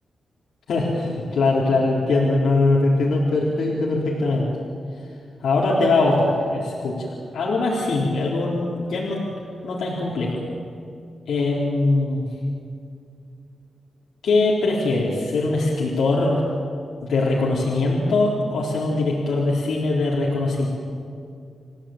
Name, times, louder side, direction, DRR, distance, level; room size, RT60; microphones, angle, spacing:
voice 1, 0.7-4.5 5.4-9.2 9.6-10.4 11.3-12.2 14.2-16.4 17.0-20.7, left 2 dB, 80° left, -5 dB, 4.1 m, -21 dB
28.5 x 16.0 x 9.0 m, 2.4 s
wide cardioid pair, 135°, 0 cm